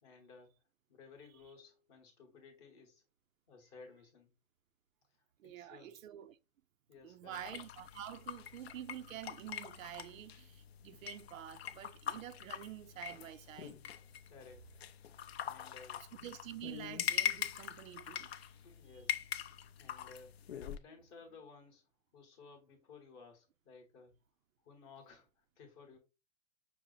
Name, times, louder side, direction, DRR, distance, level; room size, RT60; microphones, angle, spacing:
voice 1, 0.0-0.5 0.9-3.0 3.5-4.3 5.4-5.9 6.9-7.4 14.3-14.6 15.4-16.0 18.5-19.2 19.8-20.3 20.8-21.8 22.1-24.1 24.6-26.0, left 4 dB, 20° left, 0.9 m, -57 dB
voice 2, 5.4-6.4 7.0-13.8 16.2-18.5 18.9-19.1, right 11 dB, 80° right, 0.6 m, -48 dB
sound 1, 7.3-20.8, left 9 dB, 55° left, 0.5 m, -43 dB
5.9 x 2.0 x 3.8 m
hypercardioid pair, 165°, 39 cm